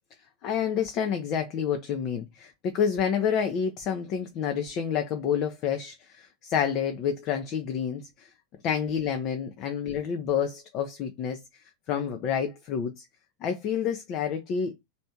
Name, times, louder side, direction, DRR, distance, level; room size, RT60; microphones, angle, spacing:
voice 1, 0.4-8.3 8.6-13.1 13.4-14.8, left 7 dB, 35° left, 0.6 m, -29 dB
3.2 x 2.8 x 4.4 m
figure-of-eight pair, 90°, 0 cm